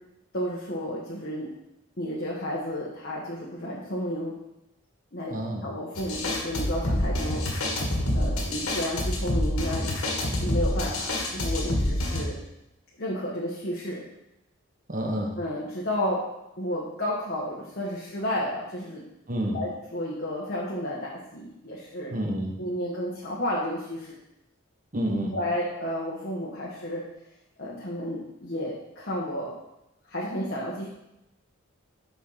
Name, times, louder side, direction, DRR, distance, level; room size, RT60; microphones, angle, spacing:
voice 1, 0.3-1.5 2.0-4.3 5.1-5.3 5.6-7.4 8.1-9.9 10.4-12.4 13.0-14.0 15.4-16.2 16.6-19.0 19.5-22.1 22.6-24.1 25.3-27.0 27.6-29.5 30.1-30.9, equal, 45° left, -5 dB, 1.3 m, -32 dB
voice 2, 5.3-5.7 14.9-15.4 19.3-19.6 22.1-22.5 24.9-25.4, equal, 40° right, 1 dB, 1.2 m, -29 dB
sound 1, 6.0-12.2, left 1 dB, 80° left, 1.6 m, -27 dB
7.2 x 4.6 x 5.6 m, 0.87 s
head